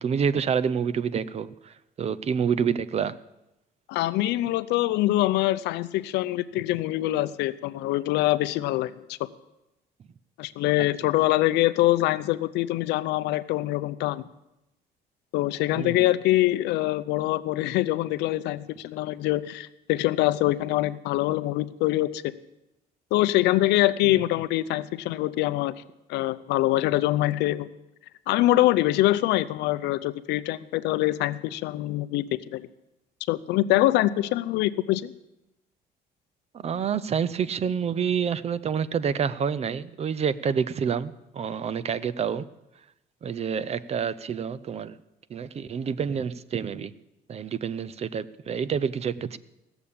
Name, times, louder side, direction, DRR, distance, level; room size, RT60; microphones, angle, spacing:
voice 1, 0.0-3.1 15.8-16.0 36.5-42.5 43.2-45.0 45.3-46.9 47.3-49.4, right 7 dB, 40° right, 17 dB, 0.6 m, -28 dB
voice 2, 3.9-9.2 10.4-14.2 15.3-22.3 23.1-25.7 26.1-27.7 28.3-32.6 33.3-35.1, left 16 dB, 85° left, 14 dB, 0.6 m, -24 dB
17.0 x 7.0 x 8.6 m, 0.93 s
cardioid pair, 110°, 17 cm